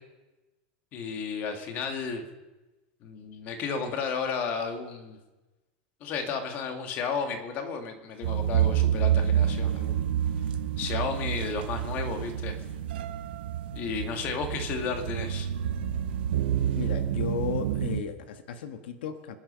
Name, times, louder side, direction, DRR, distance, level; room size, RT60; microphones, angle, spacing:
voice 1, 0.9-2.2 3.0-5.2 6.0-10.1 10.8-12.6 13.7-15.5, left 5 dB, 35° left, 5 dB, 2.0 m, -33 dB
sound 1, 8.2-18.0, right 10 dB, 80° right, 1.0 m, -28 dB
voice 2, 16.7-19.4, left 7 dB, 85° left, 8 dB, 1.4 m, -34 dB
26.0 x 10.0 x 5.6 m, 1.1 s
supercardioid pair, 170°, 5 cm